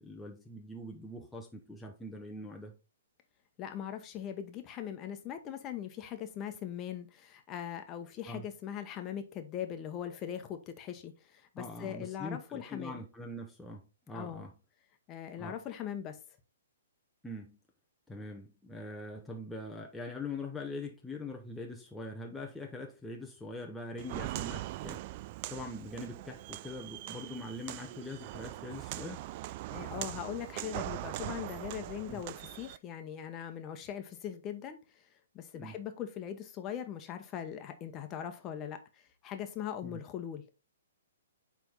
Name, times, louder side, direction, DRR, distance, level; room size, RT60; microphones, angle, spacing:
voice 1, 0.0-2.7 8.3-8.4 11.6-14.5 15.3-15.6 17.2-17.6 18.1-25.0 25.5-29.2 32.1-32.2 35.5-35.8 39.8-40.0, left 2 dB, 5° left, 0.8 m, -43 dB
voice 2, 3.6-13.0 14.1-14.5 15.1-16.2 29.7-34.8 35.3-40.4, left 9 dB, 25° left, 1.1 m, -40 dB
Walk footsteps, 24.0-32.8, right 16 dB, 40° right, 0.3 m, -41 dB
9.0 x 3.5 x 3.9 m
hypercardioid pair, 130°, 0 cm